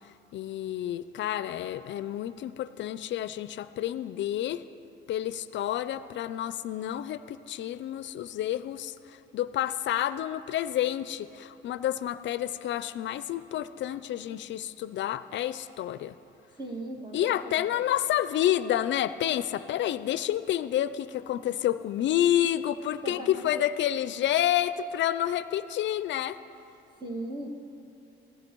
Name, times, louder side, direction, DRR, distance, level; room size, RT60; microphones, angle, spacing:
voice 1, 0.3-4.6 5.1-16.2 17.1-26.4, left 12 dB, 65° left, 14 dB, 0.4 m, -29 dB
voice 2, 16.6-17.8 23.0-23.6 27.0-27.5, right 2 dB, 20° right, 2 dB, 1.7 m, -38 dB
16.0 x 14.5 x 4.6 m, 2.7 s
cardioid pair, 90°, 20 cm